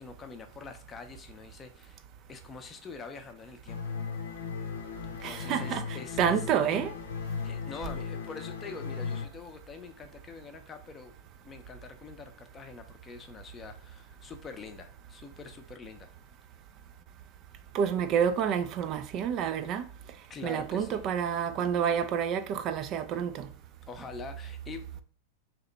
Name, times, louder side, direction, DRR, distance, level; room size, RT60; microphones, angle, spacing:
voice 1, 0.0-2.0 2.3-3.8 5.1-6.5 7.4-11.1 11.4-16.1 20.3-21.0 23.9-25.0, left 4 dB, 25° left, 0.5 m, -45 dB
sound 1, 3.7-9.2, left 5 dB, 85° left, 0.6 m, -37 dB
voice 2, 5.2-5.8 6.2-6.9 17.7-19.9 20.4-23.5, right 8 dB, 40° right, 0.3 m, -28 dB
2.9 x 2.1 x 3.9 m
hypercardioid pair, 110°, 0 cm